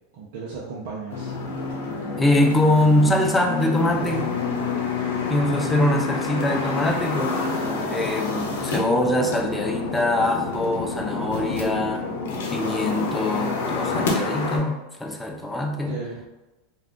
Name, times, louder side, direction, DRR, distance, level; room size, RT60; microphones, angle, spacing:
voice 1, 0.1-1.3 15.8-16.3, right 4 dB, 65° right, -6 dB, 0.6 m, -35 dB
sound 1, 1.1-14.6, left 3 dB, 85° left, 0.7 m, -28 dB
voice 2, 2.2-4.3 5.3-12.1 12.5-16.0, left 1 dB, 10° left, 2 dB, 0.4 m, -23 dB
2.4 x 2.4 x 3.5 m, 1.0 s
supercardioid pair, 125°, 0 cm